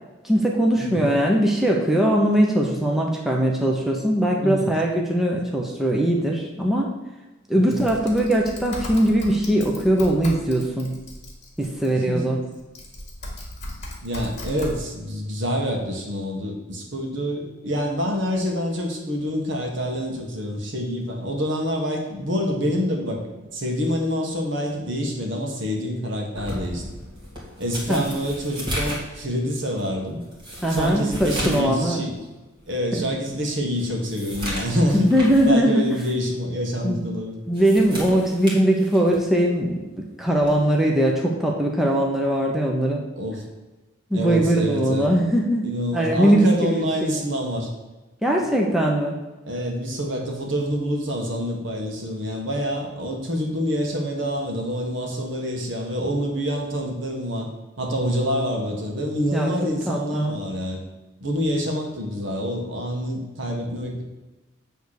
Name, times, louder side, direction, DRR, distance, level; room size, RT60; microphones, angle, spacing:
voice 1, 0.2-6.9 7.5-10.9 11.6-12.4 27.9-28.0 30.6-32.0 34.9-36.0 36.8-37.0 37.5-43.0 44.1-45.7 45.9-46.9 48.2-49.2 59.3-60.4, right 1 dB, ahead, -2 dB, 0.8 m, -21 dB
Typing, 7.7-11.9 12.5-14.7, left 1 dB, 35° left, 2.0 m, -37 dB
voice 2, 11.9-12.2 14.0-23.2 23.5-26.8 27.6-30.2 30.7-32.2 32.7-35.1 35.4-37.3 43.2-43.4 44.1-45.1 45.6-47.7 49.4-57.5 57.8-60.8 61.2-64.0, equal, 65° right, 1 dB, 1.6 m, -26 dB
sound 1, 26.3-31.7 32.1-32.2 32.8-32.9 33.3-35.5 35.9-36.1 37.4-39.3 40.4-40.6, equal, 25° right, 2.0 m, -34 dB
8.6 x 3.5 x 6.6 m, 1.1 s
head